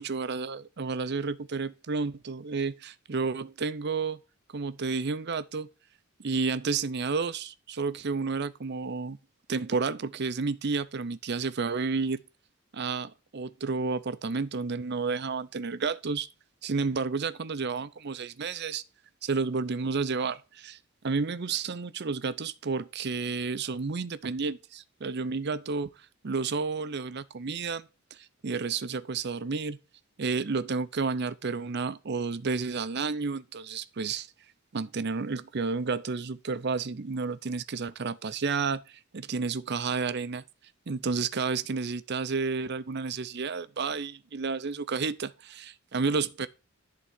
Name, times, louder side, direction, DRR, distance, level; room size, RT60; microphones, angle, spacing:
voice 1, 0.0-4.2 4.5-5.7 6.2-9.2 9.5-12.2 12.7-16.3 16.6-18.8 19.2-20.8 21.0-25.9 26.2-27.9 28.4-29.8 30.2-34.3 34.7-40.4 40.9-46.5, right 4 dB, 55° right, 0.6 m, -31 dB
11.0 x 3.8 x 7.4 m
head